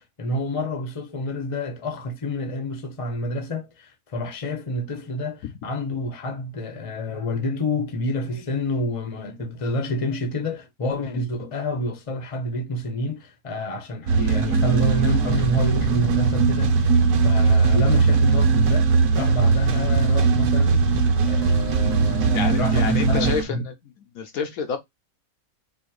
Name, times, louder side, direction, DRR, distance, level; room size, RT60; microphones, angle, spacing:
voice 1, 0.0-20.9 21.2-23.6, left 1 dB, 25° left, 0.8 m, -28 dB
sound 1, 14.1-23.4, right 4 dB, 75° right, 1.4 m, -19 dB
voice 2, 22.3-23.7 24.1-24.8, left 6 dB, 70° left, 1.1 m, -28 dB
4.3 x 2.6 x 4.6 m
omnidirectional pair, 1.7 m